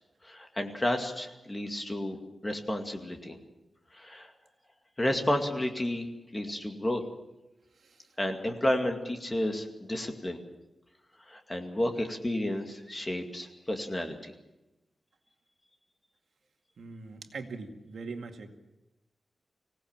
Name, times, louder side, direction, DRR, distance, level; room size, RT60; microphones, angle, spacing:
voice 1, 0.2-2.2 2.4-3.4 3.9-4.3 5.0-6.1 6.3-7.0 8.2-10.4 11.3-14.2, left 1 dB, 20° left, 4 dB, 2.2 m, -31 dB
voice 2, 16.8-18.5, right 4 dB, 75° right, 4 dB, 2.1 m, -42 dB
25.0 x 17.5 x 7.4 m, 0.98 s
wide cardioid pair, 175°, 0 cm